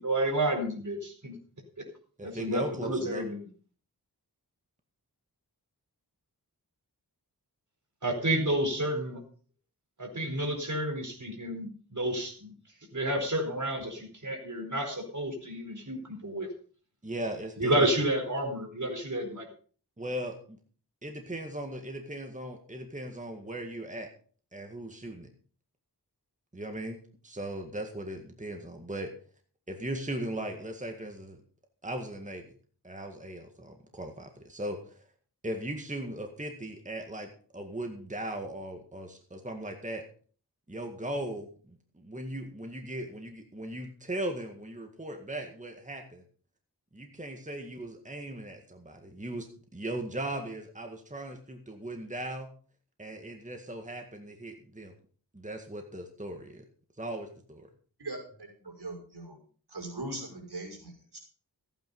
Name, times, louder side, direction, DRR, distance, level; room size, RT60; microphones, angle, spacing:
voice 1, 0.0-1.4 2.2-3.4 8.0-9.2 10.0-12.5 12.9-16.5 17.6-19.5, right 1 dB, 50° right, 2 dB, 4.4 m, -30 dB
voice 2, 2.2-3.3 17.0-17.9 20.0-20.6 21.0-24.1 24.5-25.3 26.5-29.1 29.7-31.4 31.8-32.5 32.8-35.0 35.4-40.1 40.7-46.2 46.9-52.5 53.0-54.9 55.3-56.6 57.0-57.7, right 1 dB, 20° right, 4 dB, 2.0 m, -38 dB
voice 3, 58.0-59.4 59.7-61.2, right 2 dB, 80° right, 0 dB, 5.7 m, -40 dB
15.0 x 9.2 x 5.5 m, 0.43 s
wide cardioid pair, 75°, 39 cm